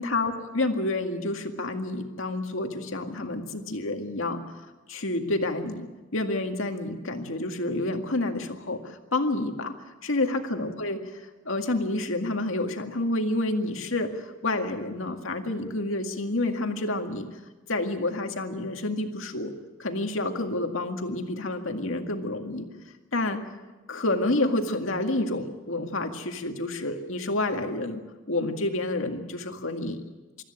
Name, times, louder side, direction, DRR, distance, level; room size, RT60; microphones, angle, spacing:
voice 1, 0.0-4.4 4.9-9.8 10.0-17.3 17.7-19.5 19.8-22.7 23.1-23.4 23.9-28.0 28.3-30.0, left 2 dB, 80° left, 5 dB, 2.0 m, -29 dB
24.5 x 13.5 x 10.0 m, 1.2 s
head